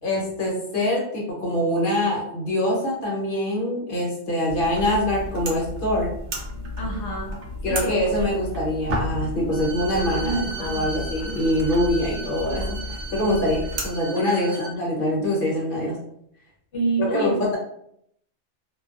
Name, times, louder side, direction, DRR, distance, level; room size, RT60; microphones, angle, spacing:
voice 1, 0.0-6.1 7.6-16.0 17.0-17.6, left 1 dB, 50° left, -3 dB, 0.9 m, -24 dB
sound 1, 4.5-13.9, equal, 60° right, 0.7 m, -32 dB
voice 2, 6.8-7.4 7.7-8.3 10.1-10.9 14.2-14.7 16.7-17.6, right 2 dB, 75° left, -2 dB, 1.1 m, -29 dB
Bowed string instrument, 9.5-14.7, right 3 dB, 80° right, 1.0 m, -37 dB
2.3 x 2.2 x 2.4 m, 0.72 s
omnidirectional pair, 1.2 m